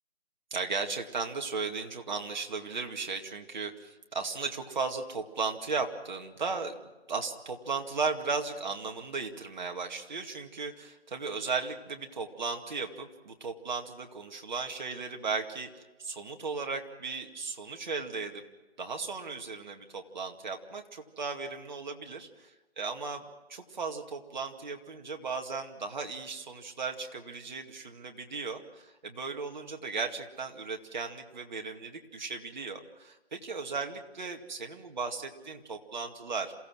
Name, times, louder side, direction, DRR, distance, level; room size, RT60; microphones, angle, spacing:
voice 1, 0.5-6.7 7.1-18.4 18.8-22.5 22.8-23.2 23.5-36.5, right 4 dB, 45° right, 4 dB, 2.2 m, -36 dB
27.5 x 16.5 x 6.2 m, 1.1 s
figure-of-eight pair, 165°, 32 cm